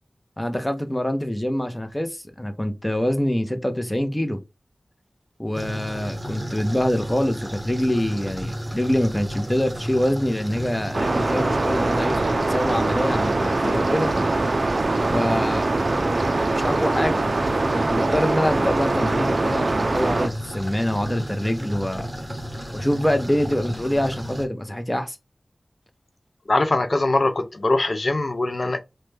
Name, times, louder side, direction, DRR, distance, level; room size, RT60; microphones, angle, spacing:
voice 1, 0.4-4.4 5.4-14.1 15.1-15.7 16.5-17.2 17.7-22.1 22.7-25.2, left 1 dB, 20° left, 0.6 m, -25 dB
sound 1, 5.5-24.5, equal, 15° right, 1.0 m, -33 dB
sound 2, 10.9-20.3, right 2 dB, 65° right, 0.3 m, -23 dB
voice 2, 26.5-28.8, left 2 dB, 60° left, 0.4 m, -22 dB
3.1 x 2.2 x 3.1 m
wide cardioid pair, 50°, 0 cm